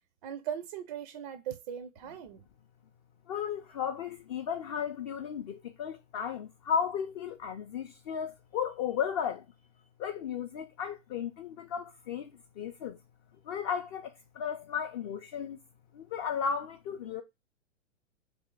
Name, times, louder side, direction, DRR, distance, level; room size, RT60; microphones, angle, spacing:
voice 1, 0.2-2.4, right 9 dB, 35° right, 0.4 m, -39 dB
voice 2, 3.3-9.4 10.0-12.3 12.6-13.0 13.4-15.6 15.9-17.2, left 7 dB, 30° left, 0.4 m, -34 dB
3.3 x 2.7 x 3.7 m
hypercardioid pair, 115°, 38 cm